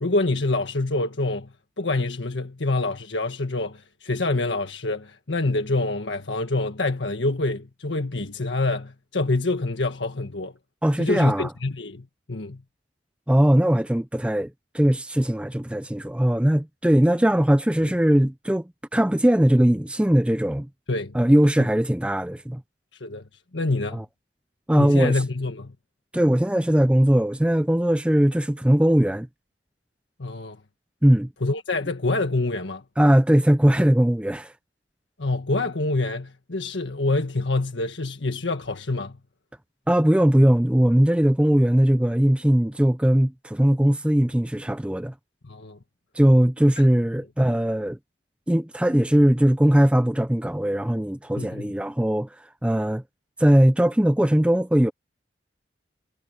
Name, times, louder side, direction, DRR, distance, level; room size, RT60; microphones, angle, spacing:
voice 1, 0.0-1.5 1.8-10.5 11.0-12.6 20.9-21.1 23.0-23.2 23.5-24.0 24.7-25.7 30.2-30.6 31.4-32.8 35.2-39.2 45.4-45.8 51.4-51.7, left 2 dB, 85° left, 1.5 m, -26 dB
voice 2, 10.8-11.5 13.3-14.5 14.7-18.6 18.9-20.7 21.1-22.6 23.9-24.0 24.7-25.2 26.1-29.3 31.0-31.3 33.0-34.5 39.9-45.1 46.2-48.0 48.5-52.3 52.6-53.0 53.4-54.9, equal, 5° right, 0.5 m, -20 dB
head